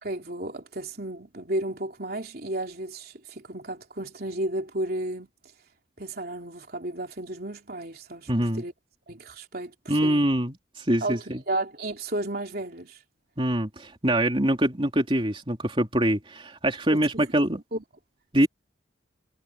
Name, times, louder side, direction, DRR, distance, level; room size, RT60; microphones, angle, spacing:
voice 1, 0.0-5.3 6.0-8.3 8.5-8.7 9.1-9.7 10.0-10.3 11.0-13.0 16.9-17.3 17.7-17.8, right 1 dB, 50° right, 3.4 m, -33 dB
voice 2, 8.3-8.6 9.9-11.4 13.4-17.6 18.3-18.5, right 1 dB, 25° right, 3.3 m, -24 dB
head